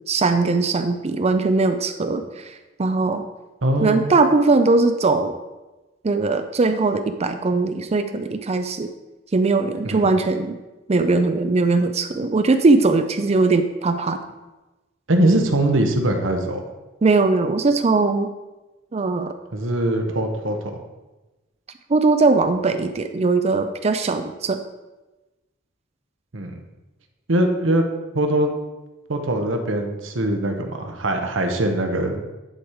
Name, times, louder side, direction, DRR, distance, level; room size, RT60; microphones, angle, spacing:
voice 1, 0.1-3.2 3.8-5.3 6.0-8.9 9.3-10.6 10.9-14.2 17.0-18.3 18.9-19.3 21.9-24.6, right 3 dB, 35° right, 8 dB, 0.5 m, -20 dB
voice 2, 3.6-4.0 9.8-10.1 15.1-16.6 19.5-20.7 26.3-26.6 27.3-27.9 28.1-28.6 29.1-32.3, right 1 dB, 75° right, 4 dB, 1.1 m, -22 dB
10.5 x 4.8 x 4.9 m, 1.1 s
head